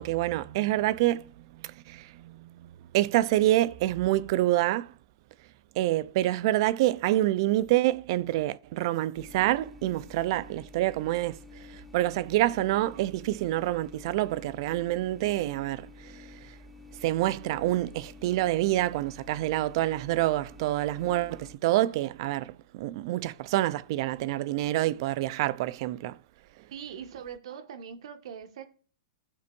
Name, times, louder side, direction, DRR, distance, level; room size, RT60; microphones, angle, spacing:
voice 1, 0.0-4.9 5.8-16.6 17.0-26.2, right 15 dB, 55° right, 0.6 m, -27 dB
sound 1, 9.2-21.6, left 3 dB, ahead, 0.7 m, -50 dB
voice 2, 26.7-28.6, right 8 dB, 70° right, 1.7 m, -41 dB
15.5 x 5.7 x 2.6 m
hypercardioid pair, 140°, 3 cm